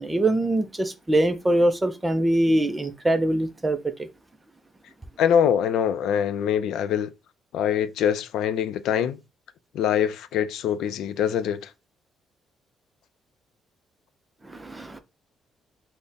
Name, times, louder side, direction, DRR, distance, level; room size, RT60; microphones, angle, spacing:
voice 1, 0.0-4.1 14.4-15.0, right 1 dB, 10° right, 0.4 m, -23 dB
voice 2, 5.2-7.1 7.5-9.2 9.7-11.7, left 9 dB, 80° left, 0.4 m, -24 dB
3.4 x 2.1 x 4.0 m
cardioid pair, 165°, 0 cm